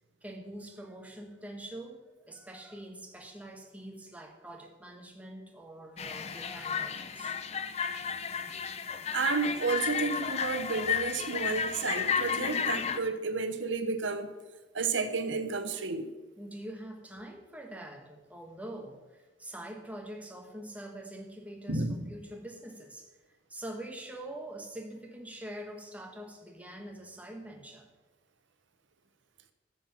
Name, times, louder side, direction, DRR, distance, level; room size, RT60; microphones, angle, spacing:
voice 1, 0.2-7.4 16.4-23.2 23.5-27.9, right 1 dB, 10° right, 2 dB, 1.1 m, -44 dB
sound 1, 6.0-13.0, left 7 dB, 35° left, 0.5 m, -33 dB
voice 2, 9.1-14.3 14.7-16.1 21.7-22.1, right 4 dB, 75° right, 9 dB, 0.9 m, -31 dB
10.0 x 7.6 x 5.8 m, 1.2 s
head